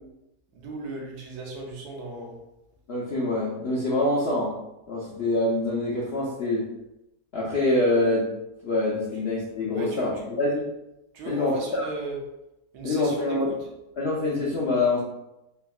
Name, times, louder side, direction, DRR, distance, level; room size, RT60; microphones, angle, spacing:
voice 1, 0.5-2.4 9.6-10.3 11.1-12.2 12.7-13.5, right 3 dB, 80° right, -1 dB, 1.2 m, -36 dB
voice 2, 2.9-4.5 4.9-6.7 7.3-8.3 8.6-10.6 11.3-11.9 12.8-13.6 14.0-15.0, left 2 dB, 65° left, -6 dB, 0.6 m, -25 dB
3.5 x 2.1 x 2.3 m, 0.91 s
omnidirectional pair, 1.7 m